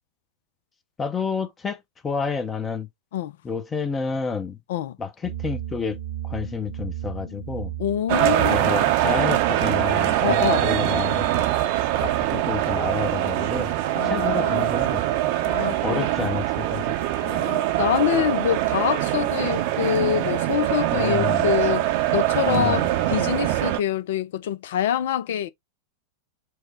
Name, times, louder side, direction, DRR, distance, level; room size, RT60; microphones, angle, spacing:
voice 1, 1.0-2.9 3.4-4.6 5.0-6.0 6.2-7.7 8.3-11.5 12.0-13.7 14.0-15.0 15.8-16.9 20.9-21.5 22.5-23.0, left 6 dB, 20° left, 0.7 m, -29 dB
sound 1, 5.2-22.3, right 12 dB, 90° right, 1.3 m, -38 dB
voice 2, 7.8-8.7 10.2-10.6 13.9-14.6 15.5-16.1 17.2-25.5, left 10 dB, 55° left, 0.4 m, -25 dB
sound 2, 8.1-23.8, right 14 dB, 50° right, 0.7 m, -23 dB
4.8 x 2.1 x 4.4 m
figure-of-eight pair, 90°, 0 cm